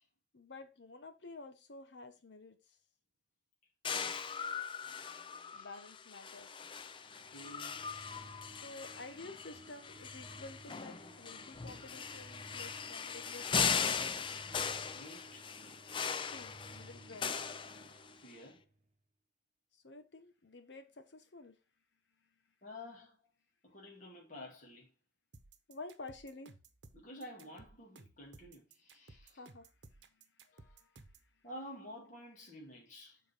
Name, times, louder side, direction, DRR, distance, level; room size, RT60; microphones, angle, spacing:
voice 1, 0.3-2.8 5.5-6.5 8.4-14.0 16.3-17.4 19.7-21.6 25.7-26.5 29.3-29.7 30.1-30.5, left 3 dB, 80° left, 1.1 m, -51 dB
sound 1, 3.8-18.3, left 6 dB, 30° left, 0.4 m, -39 dB
voice 2, 3.9-4.6 5.4-5.8 7.3-7.9 14.6-15.5 18.2-18.7 22.6-23.3 23.6-24.9 26.9-29.4 30.4-31.0 31.4-33.2, left 1 dB, 45° left, 2.3 m, -51 dB
sound 2, 7.0-18.8, right 1 dB, 40° right, 0.9 m, -57 dB
sound 3, 25.3-31.3, right 3 dB, 80° right, 0.9 m, -58 dB
7.1 x 4.1 x 5.5 m
head